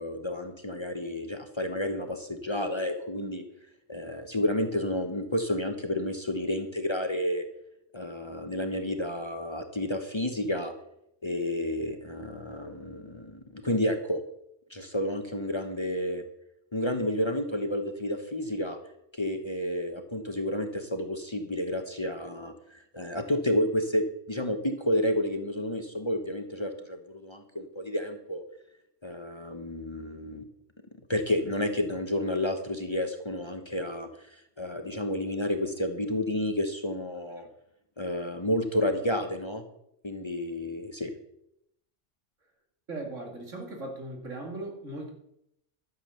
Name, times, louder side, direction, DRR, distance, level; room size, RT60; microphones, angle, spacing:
voice 1, 0.0-3.4 3.9-7.4 7.9-10.7 11.2-14.2 14.7-16.2 16.7-18.8 19.1-28.4 29.0-30.4 31.1-37.5 38.0-39.6 40.0-41.1, left 1 dB, 25° left, 6 dB, 0.9 m, -30 dB
voice 2, 42.9-45.1, right 2 dB, 85° right, 2 dB, 2.8 m, -38 dB
12.0 x 7.4 x 6.6 m, 0.77 s
omnidirectional pair, 1.2 m